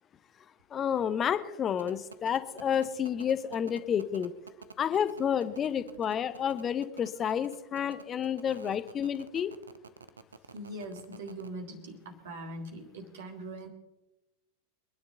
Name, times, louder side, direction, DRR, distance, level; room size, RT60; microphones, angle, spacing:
voice 1, 0.7-4.3 4.8-9.5, left 8 dB, 25° left, 13 dB, 1.0 m, -30 dB
sound 1, 1.8-11.5, right 5 dB, 75° right, 0.9 m, -48 dB
voice 2, 10.5-13.7, right 1 dB, 60° right, 4 dB, 3.0 m, -41 dB
25.0 x 10.5 x 3.9 m, 1.0 s
figure-of-eight pair, 90°, 0 cm